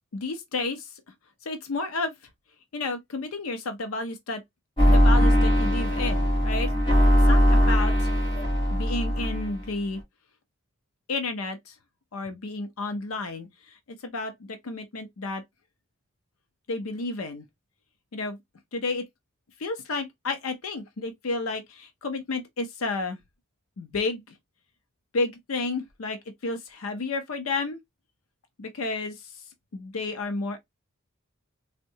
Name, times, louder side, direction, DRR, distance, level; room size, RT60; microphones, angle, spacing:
voice 1, 0.1-1.0 1.5-2.2 2.7-4.4 4.9-6.7 7.2-8.1 8.7-10.0 11.1-11.8 12.1-15.4 16.7-17.4 18.1-18.4 18.7-19.0 19.6-23.2 23.8-24.2 25.1-27.8 28.6-29.4 29.7-30.6, left 3 dB, 75° left, 0.6 m, -31 dB
sound 1, 4.8-9.7, equal, 25° left, 1.4 m, -20 dB
3.5 x 2.1 x 2.7 m
head